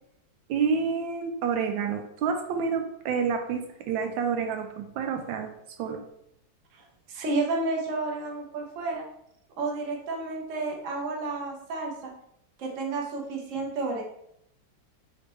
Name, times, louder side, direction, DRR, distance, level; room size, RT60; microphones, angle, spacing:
voice 1, 0.5-5.5 5.8-6.0, right 6 dB, 85° right, 5 dB, 1.3 m, -28 dB
voice 2, 6.7-9.0 9.6-12.1 12.6-14.0, right 3 dB, 55° right, 0 dB, 1.0 m, -31 dB
4.1 x 3.3 x 3.0 m, 0.75 s
omnidirectional pair, 2.0 m